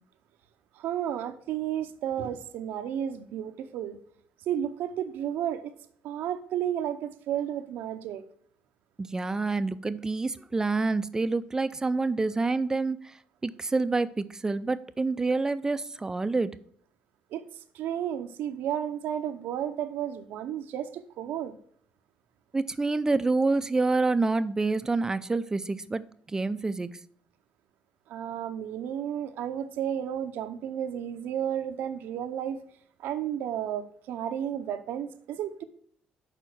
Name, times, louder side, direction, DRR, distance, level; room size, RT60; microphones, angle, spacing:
voice 1, 0.8-4.0 4.5-5.8 6.0-8.2 17.3-17.4 17.7-21.6 28.1-32.6 33.0-35.6, right 10 dB, 80° right, 0.7 m, -32 dB
voice 2, 9.0-13.1 13.4-16.5 22.5-26.9, right 3 dB, 20° right, 0.4 m, -27 dB
6.8 x 4.4 x 6.1 m
cardioid pair, 105°, 3 cm